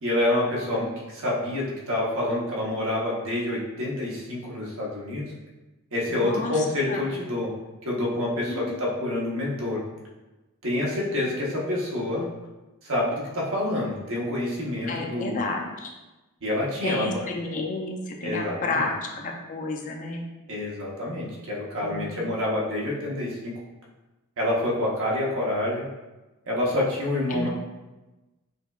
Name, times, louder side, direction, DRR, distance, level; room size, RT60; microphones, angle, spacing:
voice 1, 0.0-5.3 5.9-7.5 7.8-9.8 10.6-12.3 12.8-15.4 16.4-17.3 18.2-18.9 20.5-23.5 24.4-25.8 26.5-27.5, left 1 dB, 65° right, -4 dB, 0.9 m, -27 dB
voice 2, 6.1-7.1 8.4-8.7 14.9-15.9 16.8-20.3 21.8-22.2 27.3-27.5, left 2 dB, 35° left, 1 dB, 0.4 m, -31 dB
5.2 x 2.3 x 2.3 m, 1.1 s
head